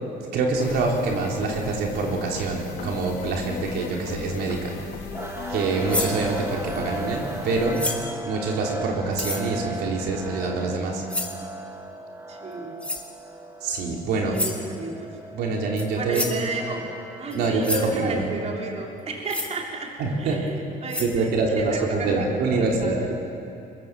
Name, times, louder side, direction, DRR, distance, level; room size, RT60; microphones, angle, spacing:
voice 1, 0.3-4.7 5.5-7.9 8.2-11.0 13.6-14.5 15.3-16.3 17.3-18.2 20.0-20.4 21.0-23.0, right 3 dB, 75° right, 0 dB, 3.7 m, -25 dB
sound 1, 0.6-7.8, left 4 dB, 75° left, 4.1 m, -37 dB
sound 2, 5.1-17.5, right 2 dB, 15° right, 1.9 m, -37 dB
sound 3, 5.9-6.2 7.7-8.2 9.1-9.5 11.1-11.4 12.8-13.1 14.3-14.6 15.8-15.9 16.1-16.4 17.3-17.4 17.6-17.9 19.3-19.5 20.5-20.6 20.9-21.1, left 2 dB, 5° left, 2.7 m, -29 dB
voice 2, 12.3-12.9 14.2-15.2 15.9-16.9 17.2-23.1, right 3 dB, 40° right, 0 dB, 4.0 m, -33 dB
23.5 x 21.5 x 7.6 m, 2.6 s
cardioid pair, 110°, 17 cm